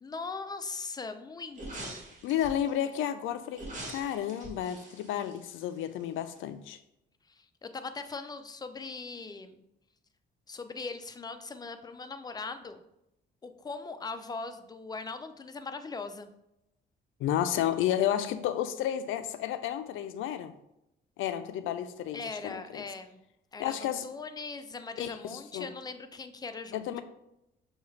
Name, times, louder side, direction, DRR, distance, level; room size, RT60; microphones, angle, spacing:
voice 1, 0.0-2.0 7.3-9.6 10.5-12.8 13.4-16.3 22.1-23.2 23.5-27.0, left 4 dB, 20° left, 8 dB, 0.4 m, -40 dB
Decapitation (more gory), 1.5-2.7 3.5-6.0 6.3-6.4, right 1 dB, 40° right, 1.5 m, -43 dB
voice 2, 2.2-3.6 3.9-6.8 17.2-20.5 21.2-22.8 23.6-24.1 25.0-25.7 26.7-27.0, left 10 dB, 80° left, 11 dB, 0.4 m, -31 dB
5.8 x 2.4 x 3.2 m, 0.84 s
cardioid pair, 90°, 20 cm